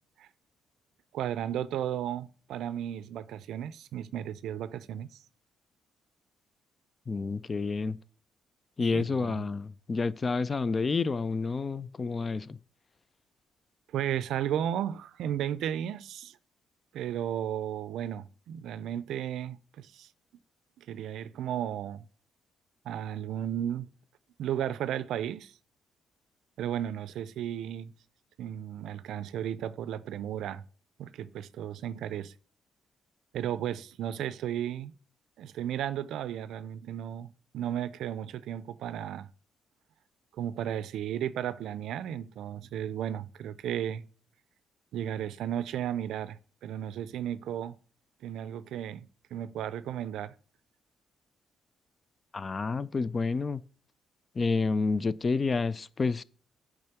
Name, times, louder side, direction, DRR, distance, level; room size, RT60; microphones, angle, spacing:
voice 1, 1.1-5.1 8.9-9.4 13.9-16.4 16.9-20.1 20.8-22.1 22.8-23.9 24.4-25.5 26.6-27.9 28.4-30.6 31.0-32.3 33.3-34.9 35.4-39.3 40.4-44.1 44.9-47.8 48.2-50.3, right 10 dB, 80° right, 0.4 m, -34 dB
voice 2, 7.1-8.0 8.8-12.6 52.3-53.6 54.4-56.2, left 4 dB, 35° left, 0.4 m, -29 dB
8.7 x 3.5 x 5.9 m
cardioid pair, 90°, 0 cm